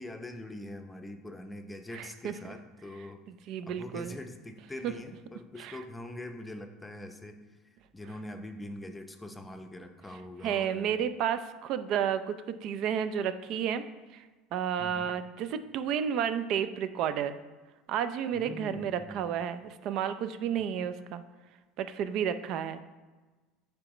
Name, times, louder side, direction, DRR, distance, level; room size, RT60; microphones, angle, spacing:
voice 1, 0.0-3.2 3.7-7.5 7.9-11.0 14.8-15.1 18.3-19.5, left 1 dB, 10° left, 6 dB, 0.6 m, -43 dB
voice 2, 1.9-2.5 3.5-4.2 4.8-4.9 5.6-5.8 10.4-13.8 14.1-14.2 14.5-17.3 17.9-21.2 21.8-22.8, right 8 dB, 60° right, 12 dB, 0.4 m, -31 dB
9.5 x 3.3 x 3.0 m, 1.3 s
supercardioid pair, 95°, 0 cm